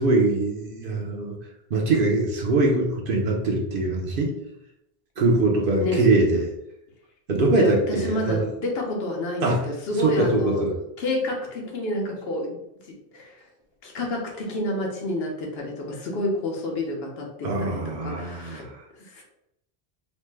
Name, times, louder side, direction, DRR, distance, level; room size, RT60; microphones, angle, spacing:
voice 1, 0.0-1.3 1.7-4.3 5.2-6.5 7.3-8.5 9.4-9.7 10.0-10.8 17.4-18.8, right 2 dB, 60° right, 0 dB, 0.8 m, -22 dB
voice 2, 7.6-10.6 11.0-12.6 12.9-13.5 13.8-18.7 19.0-19.2, left 1 dB, 65° left, 0 dB, 0.9 m, -29 dB
3.1 x 2.1 x 3.2 m, 0.83 s
omnidirectional pair, 1.1 m